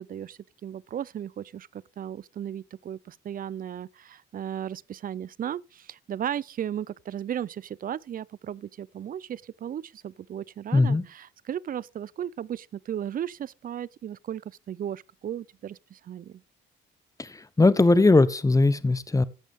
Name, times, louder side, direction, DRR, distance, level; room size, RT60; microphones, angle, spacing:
voice 1, 0.0-16.4, right 10 dB, 45° right, 0.5 m, -35 dB
voice 2, 10.7-11.0 17.2-19.2, left 3 dB, 15° left, 0.9 m, -20 dB
14.0 x 8.1 x 3.6 m
cardioid pair, 90°, 20 cm